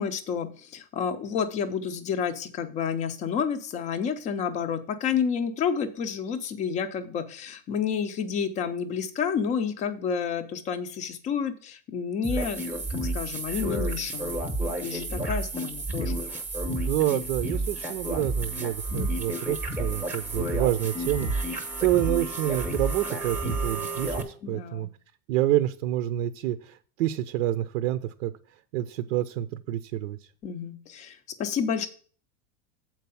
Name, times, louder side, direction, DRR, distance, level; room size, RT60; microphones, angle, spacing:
voice 1, 0.0-12.8 13.1-14.4 14.7-16.2 18.9-19.1 24.4-24.9 30.4-31.9, left 7 dB, 20° left, 10 dB, 0.5 m, -30 dB
sound 1, 12.2-24.2, right 2 dB, 5° right, 0.8 m, -31 dB
voice 2, 16.7-24.9 25.3-28.3 28.7-30.2, right 13 dB, 70° right, 11 dB, 0.6 m, -28 dB
7.5 x 4.6 x 6.9 m, 0.43 s
supercardioid pair, 165°, 40 cm